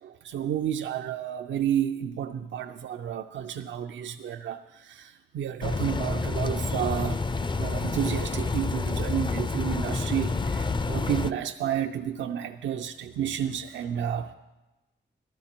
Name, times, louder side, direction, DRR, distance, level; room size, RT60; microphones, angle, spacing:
voice 1, 0.0-7.2 7.5-14.3, right 9 dB, 85° right, 5 dB, 0.5 m, -31 dB
sound 1, 5.6-11.3, left 3 dB, 25° left, 0.4 m, -29 dB
14.0 x 12.5 x 4.4 m, 1.1 s
cardioid pair, 60°, 19 cm